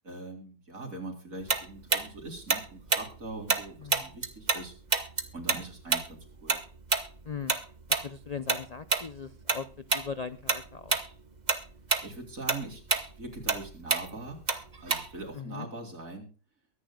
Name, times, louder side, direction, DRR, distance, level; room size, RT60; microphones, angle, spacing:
voice 1, 0.0-4.7 5.3-6.6 12.0-14.4 14.8-16.3, right 2 dB, 60° right, 2 dB, 4.4 m, -42 dB
Tick-tock, 1.5-4.6 4.9-9.6 9.9-10.1 10.5-11.1 11.4-15.3, right 4 dB, 30° right, 1.2 m, -28 dB
voice 2, 7.2-7.6 7.9-11.0 15.3-15.7, left 6 dB, 45° left, 12 dB, 0.5 m, -39 dB
23.5 x 10.5 x 2.3 m, 0.37 s
omnidirectional pair, 1.6 m